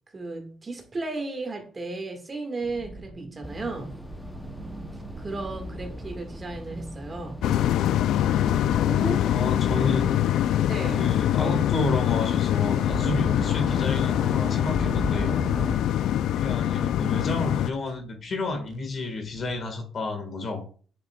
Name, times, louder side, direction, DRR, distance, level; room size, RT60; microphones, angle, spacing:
voice 1, 0.1-4.0 4.9-7.5 8.5-9.3 10.7-11.1, right 3 dB, 25° right, 1.8 m, -35 dB
sound 1, 2.6-19.6, right 3 dB, 55° right, 1.5 m, -47 dB
sound 2, 3.4-15.8, equal, 10° left, 0.7 m, -37 dB
sound 3, 7.4-17.7, left 12 dB, 80° left, 0.3 m, -24 dB
voice 2, 9.2-10.2 11.0-15.3 16.3-20.7, left 2 dB, 45° left, 1.7 m, -30 dB
8.8 x 6.5 x 2.3 m
cardioid pair, 110°, 0 cm